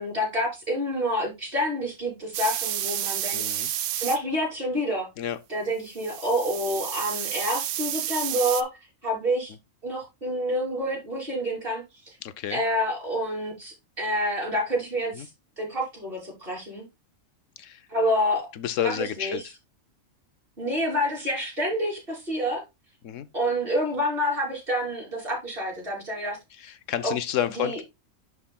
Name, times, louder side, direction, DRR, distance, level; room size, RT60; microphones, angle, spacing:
voice 1, 0.0-3.4 4.0-5.1 5.5-8.7 9.0-9.5 9.8-12.2 12.5-15.3 15.6-16.8 17.9-18.5 18.8-19.5 20.6-22.6 23.3-26.4 27.0-27.1 27.5-27.8, equal, 45° right, 3.4 m, -28 dB
sound 1, 2.3-4.2 5.9-8.6, right 11 dB, 70° right, 0.9 m, -30 dB
voice 2, 3.3-3.7 5.2-5.4 12.2-12.6 15.1-15.3 17.6-17.8 18.5-19.5 23.0-23.3 26.6-27.8, left 10 dB, 75° left, 1.0 m, -30 dB
11.5 x 4.9 x 2.2 m
omnidirectional pair, 1.4 m